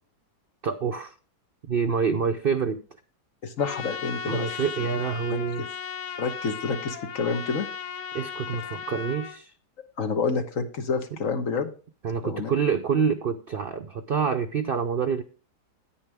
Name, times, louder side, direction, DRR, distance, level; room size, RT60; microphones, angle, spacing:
voice 1, 0.6-1.1 1.7-2.8 4.3-5.7 8.1-9.5 11.1-11.2 12.0-15.2, right 6 dB, 85° right, 7 dB, 0.5 m, -27 dB
voice 2, 3.4-4.5 4.8-4.9 5.3-5.7 6.2-7.7 10.0-11.7 12.2-12.5, left 5 dB, 55° left, 7 dB, 1.4 m, -28 dB
Trumpet, 3.6-9.4, left 7 dB, 70° left, 1.4 m, -36 dB
10.0 x 9.2 x 3.5 m, 0.37 s
omnidirectional pair, 1.8 m